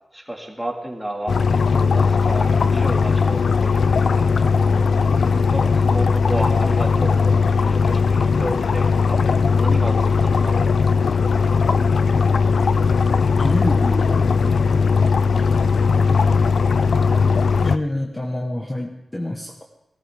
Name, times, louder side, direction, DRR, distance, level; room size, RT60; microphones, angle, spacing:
voice 1, 0.1-4.3 5.3-9.2 9.6-10.9 15.3-15.7, right 1 dB, 5° right, 1 dB, 2.2 m, -32 dB
sound 1, 1.3-17.8, left 5 dB, 75° left, 0.4 m, -18 dB
voice 2, 13.3-14.6 17.6-19.6, left 1 dB, 15° left, 1 dB, 1.2 m, -27 dB
18.5 x 13.5 x 3.6 m, 0.90 s
wide cardioid pair, 100°, 0 cm